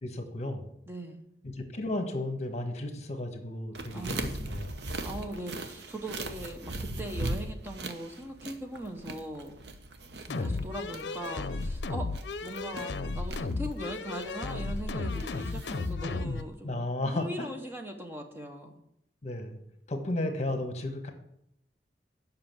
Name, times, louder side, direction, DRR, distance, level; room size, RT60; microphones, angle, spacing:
voice 1, 0.0-0.6 1.4-4.7 10.3-10.6 16.6-17.3 19.2-19.6 19.9-21.1, left 1 dB, 40° left, 5 dB, 1.3 m, -34 dB
voice 2, 0.9-1.2 3.9-4.4 5.0-9.6 10.4-12.1 12.4-18.8, right 1 dB, 15° right, 3 dB, 0.9 m, -40 dB
sound 1, 3.7-15.9, right 2 dB, 70° right, 0.9 m, -40 dB
sound 2, 10.3-16.5, left 3 dB, 80° left, 0.6 m, -34 dB
7.5 x 5.8 x 7.5 m, 0.76 s
head